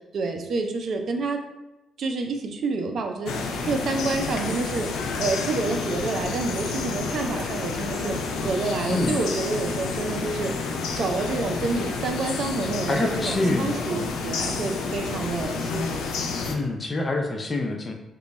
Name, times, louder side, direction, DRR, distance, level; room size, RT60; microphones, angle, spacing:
voice 1, 0.1-1.4 2.0-4.9 5.2-10.5 11.0-16.0, right 3 dB, 60° right, 4 dB, 0.4 m, -28 dB
sound 1, 3.3-16.6, left 4 dB, 85° left, 0.4 m, -30 dB
voice 2, 12.6-14.1 16.5-17.9, left 2 dB, 30° left, 3 dB, 0.5 m, -26 dB
3.0 x 2.2 x 4.0 m, 1.0 s
cardioid pair, 90°, 0 cm